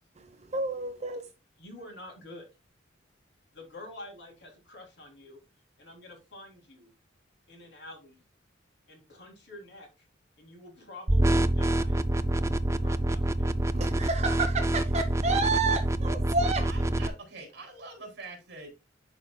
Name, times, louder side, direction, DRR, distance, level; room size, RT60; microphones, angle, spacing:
voice 1, 0.5-1.2 13.7-16.6, right 3 dB, 35° right, 0.8 m, -29 dB
voice 2, 1.6-2.5 3.5-5.4 5.8-6.9 7.5-8.1 8.9-10.1 10.4-12.0 12.7-13.5, left 1 dB, 65° left, 3.1 m, -47 dB
sound 1, 11.1-17.1, right 1 dB, 15° right, 0.4 m, -26 dB
voice 3, 16.6-18.7, right 3 dB, 60° right, 3.2 m, -44 dB
11.0 x 5.0 x 2.3 m
head